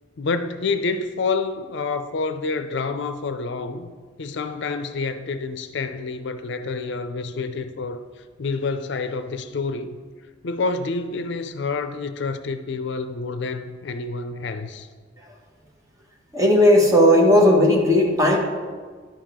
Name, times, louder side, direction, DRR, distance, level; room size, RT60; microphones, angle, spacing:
voice 1, 0.2-3.9 4.2-8.0 8.4-10.0 10.4-14.9, left 4 dB, 65° left, 0.5 m, -28 dB
voice 2, 16.3-18.4, left 1 dB, 15° right, 1.3 m, -15 dB
11.0 x 7.3 x 3.7 m
head